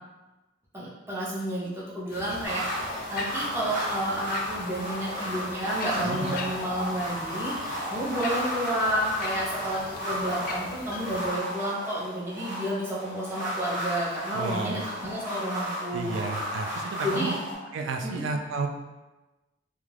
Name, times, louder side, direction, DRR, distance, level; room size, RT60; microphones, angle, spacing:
voice 1, 0.7-1.7 1.9-16.2 16.8-17.3 18.0-18.2, right 1 dB, 10° right, -7 dB, 0.6 m, -31 dB
sound 1, 2.1-11.3, left 3 dB, 45° left, 0.3 m, -39 dB
sound 2, 2.4-17.5, equal, 45° right, 0.8 m, -34 dB
voice 2, 6.0-6.3 14.3-14.8 15.9-17.3 17.7-18.7, right 4 dB, 70° right, 4 dB, 0.3 m, -32 dB
2.3 x 2.3 x 3.2 m, 1.1 s
head